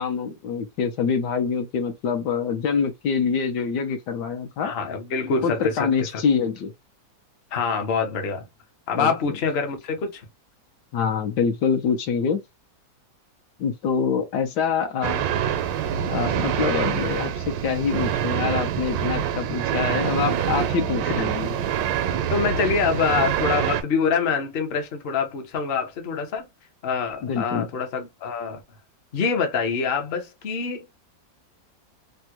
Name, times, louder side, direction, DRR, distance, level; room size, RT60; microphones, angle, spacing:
voice 1, 0.0-4.7 5.4-6.7 8.9-9.2 10.9-12.4 13.6-15.2 16.1-21.5 27.2-27.7, left 6 dB, 70° left, 1.2 m, -25 dB
voice 2, 4.6-5.9 7.5-8.5 8.9-10.2 21.0-21.4 22.3-26.5 26.8-28.6 29.1-30.9, left 5 dB, 50° left, 0.7 m, -25 dB
sound 1, 15.0-23.8, right 9 dB, 80° right, 1.2 m, -25 dB
3.5 x 2.1 x 2.8 m
omnidirectional pair, 2.0 m